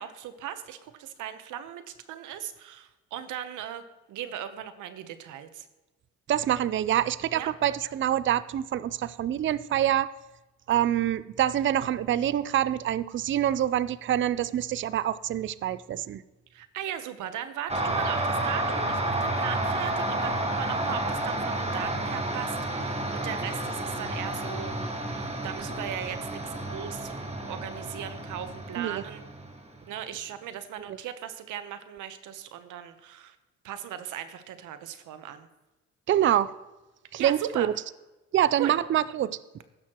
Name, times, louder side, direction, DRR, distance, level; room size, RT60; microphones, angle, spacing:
voice 1, 0.0-5.7 7.3-7.5 16.5-24.8 25.2-27.2 27.4-29.2 29.9-33.4 33.6-35.5 37.1-37.7 38.6-38.7, right 10 dB, 80° right, 11 dB, 0.9 m, -38 dB
voice 2, 6.3-10.1 10.7-16.2 28.8-29.0 30.9-31.0 36.1-36.5 37.1-37.7 38.3-39.4, right 11 dB, 40° right, 17 dB, 0.4 m, -26 dB
sound 1, 17.7-29.8, right 1 dB, 20° right, 1.3 m, -31 dB
16.0 x 6.4 x 2.9 m, 1.1 s
cardioid pair, 90°, 30 cm